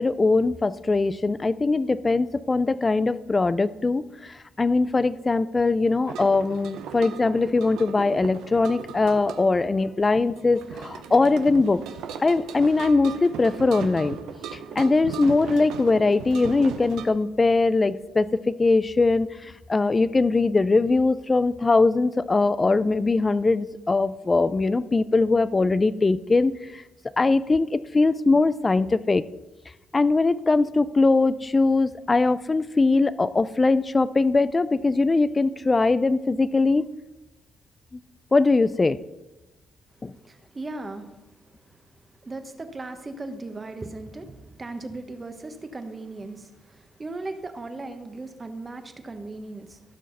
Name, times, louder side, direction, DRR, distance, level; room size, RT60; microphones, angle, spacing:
voice 1, 0.0-4.0 4.3-11.8 12.2-14.2 14.5-26.8 27.2-29.2 29.9-36.9 37.9-38.0 38.3-39.0 40.0-40.1, left 3 dB, 25° left, 16 dB, 0.4 m, -21 dB
sound 1, 6.0-17.1, right 7 dB, 90° right, 0.8 m, -38 dB
voice 2, 40.2-41.1 42.2-49.8, right 2 dB, 25° right, 7 dB, 1.2 m, -37 dB
15.5 x 6.3 x 4.1 m, 1.0 s
cardioid pair, 90°, 0 cm